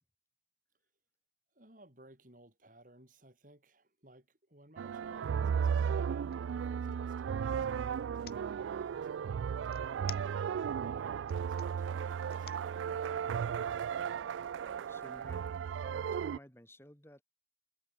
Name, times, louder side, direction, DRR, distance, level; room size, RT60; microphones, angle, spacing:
voice 1, 1.5-10.0 10.8-12.6, right 1 dB, 45° right, 4.0 m, -60 dB
sound 1, 4.8-16.4, right 7 dB, 90° right, 0.3 m, -35 dB
sound 2, 4.9-5.1 5.5-7.1 8.0-8.4 9.7-10.7 11.1-11.7 12.3-12.7, left 11 dB, 55° left, 1.1 m, -50 dB
voice 2, 14.6-17.2, left 1 dB, 15° left, 2.9 m, -56 dB
head